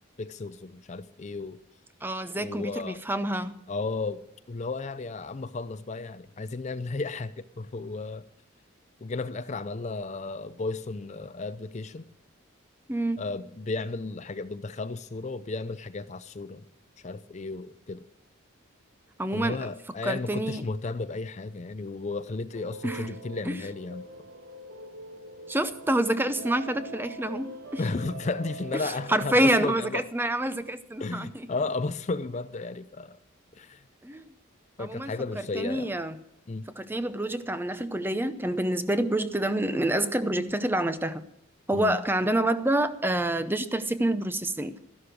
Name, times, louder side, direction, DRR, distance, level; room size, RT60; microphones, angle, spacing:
voice 1, 0.2-1.6 2.3-3.0 3.7-8.2 9.0-12.0 13.2-16.6 17.0-18.0 19.3-24.0 27.8-30.1 31.0-33.2 33.6-33.8 34.8-35.9 36.5-36.6 41.7-42.0, left 3 dB, 35° left, 14 dB, 0.5 m, -34 dB
voice 2, 2.0-3.6 12.9-13.2 19.2-19.7 20.0-20.7 22.8-23.1 23.4-23.6 25.5-27.8 28.8-31.5 34.0-34.3 34.8-35.1 35.5-36.2 36.7-41.2 41.7-44.8, right 1 dB, 10° right, 12 dB, 0.6 m, -27 dB
sound 1, 22.5-29.4, right 1 dB, 80° right, 1.6 m, -43 dB
13.0 x 11.5 x 6.2 m, 0.77 s
head